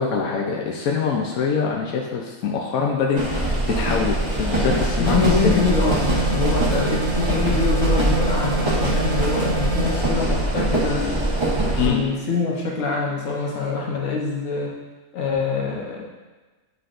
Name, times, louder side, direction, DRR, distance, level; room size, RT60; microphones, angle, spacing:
voice 1, 0.0-5.7 6.7-7.0 11.8-12.0 13.6-13.8, left 6 dB, 90° left, -1 dB, 1.2 m, -24 dB
sound 1, 3.2-11.9, right 1 dB, 25° right, 0.9 m, -23 dB
voice 2, 5.0-11.2 11.8-14.7 15.1-16.1, left 4 dB, 70° left, -2 dB, 1.4 m, -25 dB
sound 2, 5.1-10.0, right 3 dB, 55° right, 1.0 m, -27 dB
8.0 x 4.9 x 2.5 m, 1.3 s
omnidirectional pair, 1.4 m